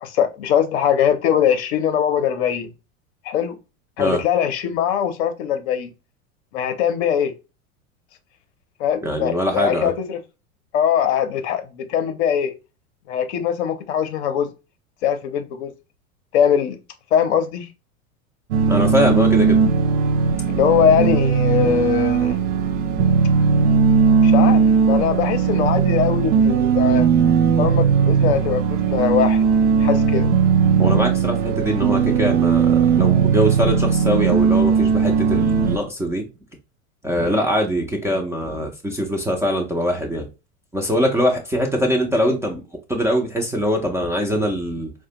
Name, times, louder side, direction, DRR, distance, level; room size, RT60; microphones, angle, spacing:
voice 1, 0.0-2.7 3.2-3.6 4.0-5.9 6.5-7.3 8.8-10.2 10.7-12.5 13.1-14.5 15.0-15.7 16.3-16.8 17.1-17.7 20.5-22.4 24.2-27.1 27.6-30.3 37.2-37.5, left 9 dB, 50° left, 0.7 m, -21 dB
voice 2, 9.0-9.9 18.7-19.6 30.8-36.3 37.0-40.3 40.7-42.6 42.9-44.9, equal, 5° right, 0.5 m, -22 dB
sound 1, 18.5-35.8, right 6 dB, 55° right, 0.7 m, -18 dB
4.7 x 2.2 x 2.8 m
figure-of-eight pair, 85°, 43 cm